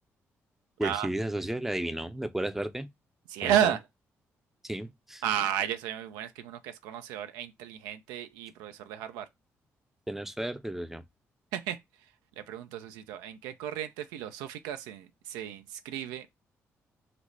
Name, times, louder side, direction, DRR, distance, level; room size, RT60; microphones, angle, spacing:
voice 1, 0.8-2.9 3.4-3.8 4.6-5.2 10.1-11.0, right 1 dB, 5° right, 0.5 m, -33 dB
voice 2, 3.3-3.8 5.2-9.3 11.5-11.8 12.5-16.3, right 10 dB, 85° right, 0.4 m, -32 dB
3.9 x 2.0 x 3.1 m
hypercardioid pair, 45°, 6 cm